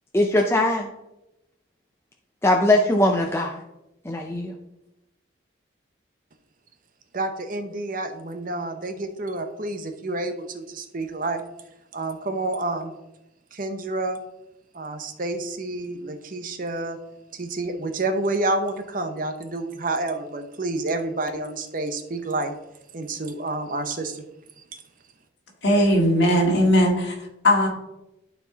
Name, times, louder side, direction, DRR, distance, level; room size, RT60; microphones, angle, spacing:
voice 1, 0.1-0.9 2.4-3.6 4.1-4.5, left 1 dB, 15° left, 2 dB, 0.5 m, -20 dB
voice 2, 7.1-11.4 11.9-12.9 13.5-14.2 14.7-17.0 17.3-22.5 22.9-24.2, right 2 dB, 45° right, 7 dB, 0.8 m, -29 dB
voice 3, 25.6-27.2 27.4-27.7, equal, 60° left, -1 dB, 2.1 m, -18 dB
11.5 x 4.6 x 4.0 m, 0.90 s
head